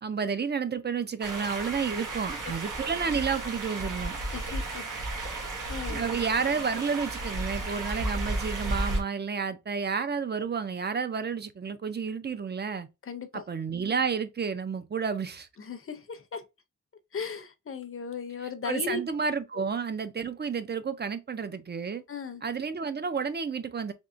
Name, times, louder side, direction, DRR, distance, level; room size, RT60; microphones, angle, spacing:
voice 1, 0.0-4.2 5.9-12.9 13.3-15.5 18.6-22.0 22.4-23.9, right 6 dB, 35° right, 0.4 m, -31 dB
sound 1, 1.2-9.0, right 2 dB, 80° right, 1.0 m, -33 dB
voice 2, 4.3-4.8 5.2-6.0 13.0-13.4 15.6-16.4 17.1-19.0 22.1-22.4, left 5 dB, 45° left, 0.6 m, -37 dB
3.6 x 2.9 x 2.5 m
wide cardioid pair, 135°, 31 cm